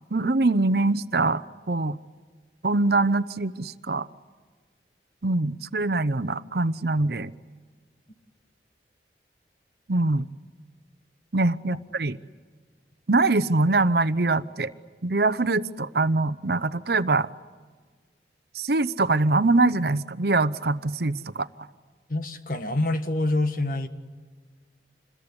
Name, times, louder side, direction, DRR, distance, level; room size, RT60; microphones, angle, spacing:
voice 1, 0.1-2.0 2.6-4.1 5.2-7.3 9.9-10.3 11.3-12.2 13.1-14.7 15.0-17.3 18.5-21.5, right 2 dB, 60° right, 14 dB, 0.8 m, -23 dB
voice 2, 22.1-23.9, left 2 dB, 50° left, 8 dB, 1.8 m, -26 dB
27.5 x 21.5 x 9.7 m, 1.5 s
head